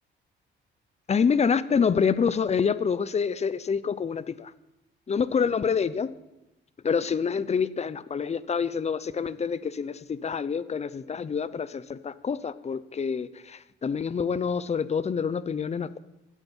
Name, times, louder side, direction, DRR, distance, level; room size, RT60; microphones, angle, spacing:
voice 1, 1.1-4.5 5.1-6.1 6.8-16.0, left 6 dB, 35° left, 15 dB, 0.7 m, -27 dB
16.5 x 8.3 x 5.6 m, 0.96 s
cardioid pair, 90°, 20 cm